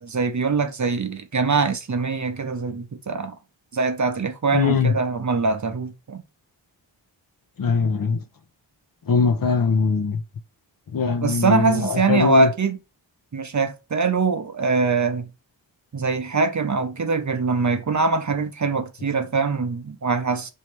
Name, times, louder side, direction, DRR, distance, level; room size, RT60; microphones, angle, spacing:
voice 1, 0.0-3.4 3.7-6.2 11.2-12.8 13.3-15.3 15.9-20.5, right 4 dB, 40° right, 0.7 m, -23 dB
voice 2, 4.5-4.9 7.6-8.2 9.1-10.2 10.9-12.5, left 5 dB, 50° left, 0.6 m, -21 dB
3.1 x 2.8 x 4.6 m
wide cardioid pair, 80°, 45 cm